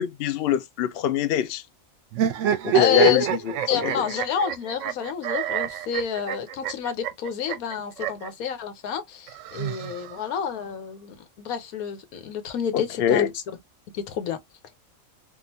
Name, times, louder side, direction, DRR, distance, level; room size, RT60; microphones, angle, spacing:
voice 1, 0.0-1.6 2.6-3.2 3.7-3.9 12.7-13.3, left 10 dB, 65° left, 0.6 m, -23 dB
sound 1, 2.1-8.3 9.3-10.4, right 10 dB, 70° right, 0.8 m, -27 dB
voice 2, 2.7-3.3 3.7-13.4 13.9-14.4, left 8 dB, 85° left, 1.3 m, -29 dB
3.7 x 2.5 x 2.7 m
omnidirectional pair, 1.5 m